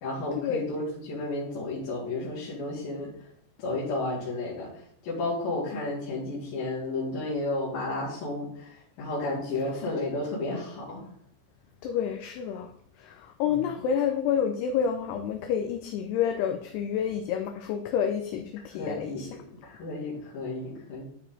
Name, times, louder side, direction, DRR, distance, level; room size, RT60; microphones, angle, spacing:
voice 1, 0.0-3.1 3.6-11.0 13.5-13.6 18.7-21.0, left 2 dB, 60° left, -8 dB, 3.6 m, -32 dB
voice 2, 11.8-12.7 13.0-19.3, left 8 dB, 80° left, 5 dB, 2.4 m, -29 dB
11.5 x 4.5 x 3.8 m, 0.67 s
omnidirectional pair, 5.2 m